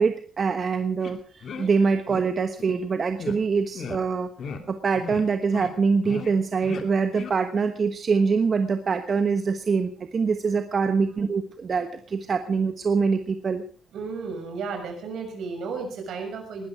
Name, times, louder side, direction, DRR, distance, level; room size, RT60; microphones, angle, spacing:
voice 1, 0.0-4.3 4.7-13.6, right 5 dB, 45° right, 8 dB, 1.2 m, -24 dB
sound 1, 1.0-1.1 1.4-1.7 2.1-2.2 2.6-2.7 3.2-3.4 3.7-4.0 4.4-4.6 4.9-5.2 5.5-5.7 6.0-6.3 6.6-6.8 7.1-7.3, left 5 dB, 60° left, 2.6 m, -36 dB
voice 2, 13.9-16.7, right 4 dB, 75° right, 4 dB, 6.4 m, -33 dB
20.0 x 12.5 x 5.0 m, 0.44 s
cardioid pair, 90°, 0 cm